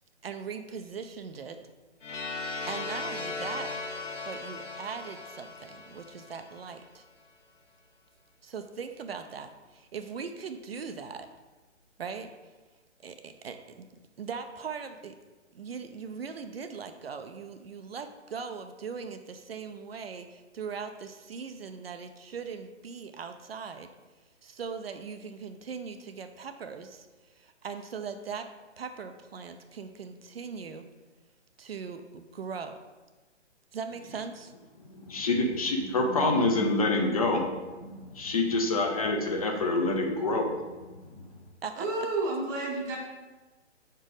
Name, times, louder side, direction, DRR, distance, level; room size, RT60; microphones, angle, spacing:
voice 1, 0.2-1.6 2.7-3.7 4.3-7.1 8.4-11.3 12.0-12.5 13.0-13.9 14.2-15.1 15.5-23.9 24.4-28.5 28.8-30.8 31.6-32.8 33.7-34.5 41.6-41.9, right 6 dB, 55° right, 8 dB, 0.6 m, -40 dB
sound 1, 2.0-6.9, left 3 dB, 90° left, 1.0 m, -38 dB
voice 2, 34.9-41.2, left 2 dB, 30° left, 2 dB, 0.6 m, -27 dB
voice 3, 41.8-43.0, right 2 dB, 15° right, -2 dB, 0.8 m, -30 dB
5.0 x 4.5 x 4.8 m, 1.2 s
hypercardioid pair, 145°, 36 cm